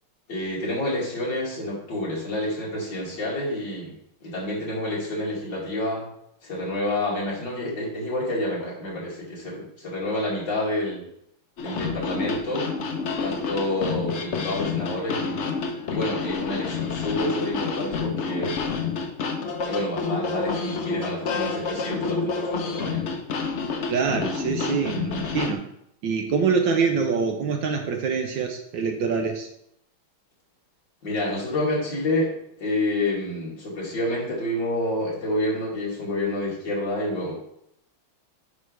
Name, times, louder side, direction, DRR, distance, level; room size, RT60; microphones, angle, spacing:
voice 1, 0.3-3.9 4.2-6.0 6.4-11.0 11.6-12.7 13.2-15.6 15.9-18.7 19.6-23.0 31.0-32.3 32.6-37.4, left 1 dB, 60° left, -5 dB, 3.1 m, -28 dB
sound 1, 11.6-25.5, left 5 dB, 75° left, 0.6 m, -29 dB
voice 2, 23.9-25.6 26.0-29.5, right 5 dB, 70° right, 4 dB, 1.4 m, -25 dB
9.4 x 5.5 x 3.3 m, 0.75 s
omnidirectional pair, 2.3 m